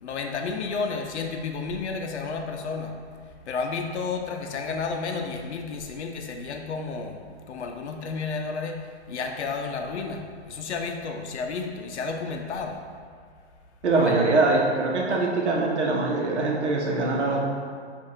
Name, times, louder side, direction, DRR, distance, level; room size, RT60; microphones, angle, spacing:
voice 1, 0.0-3.0 3.5-7.2 7.5-12.8 13.9-14.1, left 4 dB, 85° left, 4 dB, 0.5 m, -31 dB
voice 2, 13.8-17.4, right 3 dB, 90° right, -1 dB, 0.8 m, -23 dB
6.2 x 2.5 x 2.7 m, 2.1 s
hypercardioid pair, 130°, 33 cm